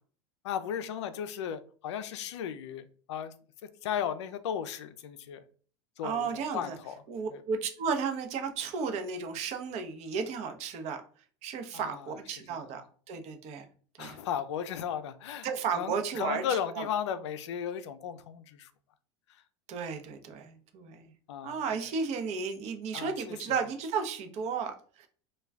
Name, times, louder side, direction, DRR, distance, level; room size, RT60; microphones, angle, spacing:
voice 1, 0.4-3.3 3.8-5.4 6.0-6.9 7.3-7.4 11.7-12.1 12.5-12.6 14.0-15.5 15.7-18.7 21.3-21.6 22.9-23.1 23.5-23.6, left 8 dB, 80° left, 0.4 m, -35 dB
voice 2, 6.0-6.8 7.1-11.0 11.4-12.8 13.1-13.6 14.0-14.2 15.4-16.9 19.7-21.1 21.4-25.1, right 5 dB, 50° right, 0.6 m, -34 dB
2.3 x 2.2 x 3.3 m
hypercardioid pair, 95°, 15 cm